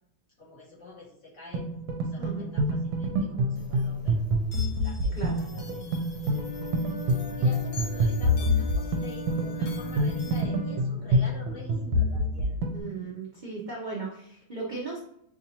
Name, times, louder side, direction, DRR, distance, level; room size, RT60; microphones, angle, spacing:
voice 1, 0.4-1.6 2.0-4.2 4.8-5.9 7.0-12.5, left 2 dB, 40° left, -6 dB, 1.5 m, -47 dB
sound 1, 1.5-12.8, equal, 80° right, 1.4 m, -27 dB
voice 2, 2.2-2.5 5.1-5.4 12.7-15.0, right 4 dB, 65° right, -5 dB, 0.4 m, -36 dB
sound 2, 3.5-10.4, left 2 dB, 90° left, 0.6 m, -44 dB
Wind instrument woodwind instrument, 6.2-10.9, left 4 dB, 65° left, 1.3 m, -41 dB
6.9 x 2.5 x 2.8 m, 0.72 s
omnidirectional pair, 2.2 m